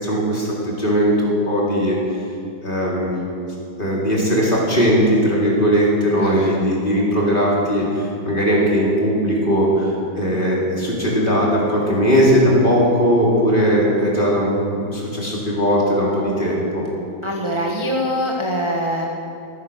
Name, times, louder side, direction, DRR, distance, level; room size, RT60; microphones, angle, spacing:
voice 1, 0.0-2.0 2.6-3.1 3.8-16.8, equal, 25° left, -5 dB, 3.8 m, -18 dB
voice 2, 6.2-6.6 17.2-19.1, equal, 15° right, -2 dB, 1.4 m, -23 dB
15.0 x 14.5 x 6.4 m, 2.7 s
omnidirectional pair, 2.0 m